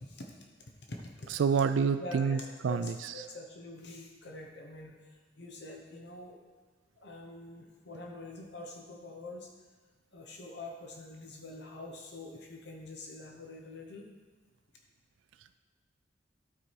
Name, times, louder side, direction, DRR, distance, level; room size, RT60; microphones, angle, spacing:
voice 1, 0.0-0.4 0.9-1.3 2.0-6.4 7.0-9.5 10.1-14.0, left 2 dB, 60° left, 1 dB, 1.0 m, -45 dB
voice 2, 1.4-2.4 2.6-3.1, right 6 dB, 90° right, 10 dB, 0.3 m, -27 dB
12.5 x 4.9 x 4.7 m, 1.3 s
head